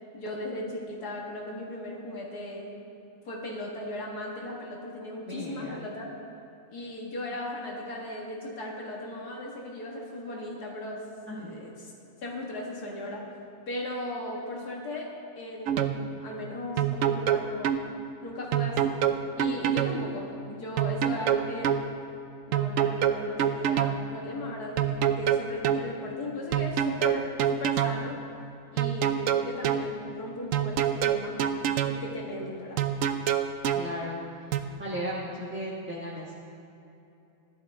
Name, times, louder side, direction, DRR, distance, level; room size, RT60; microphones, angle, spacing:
voice 1, 0.1-2.7 3.3-6.1 6.7-11.0 11.3-11.9 12.2-13.3 13.7-15.1 15.4-16.0 16.2-17.8 18.2-19.0 19.4-21.8 22.5-28.2 28.7-31.4 31.8-32.8, left 1 dB, 85° left, -2 dB, 2.3 m, -37 dB
voice 2, 5.3-5.8 11.3-11.5 33.7-34.2 34.8-36.3, equal, 10° right, -7 dB, 1.3 m, -35 dB
sound 1, 15.7-16.0 16.8-17.8 18.5-20.0 20.8-21.8 22.5-24.0 24.8-25.8 26.5-28.0 28.8-29.9 30.5-32.0 32.8-33.9 34.5-34.6, right 10 dB, 70° right, 0.9 m, -25 dB
14.0 x 11.5 x 3.6 m, 2.8 s
omnidirectional pair, 1.6 m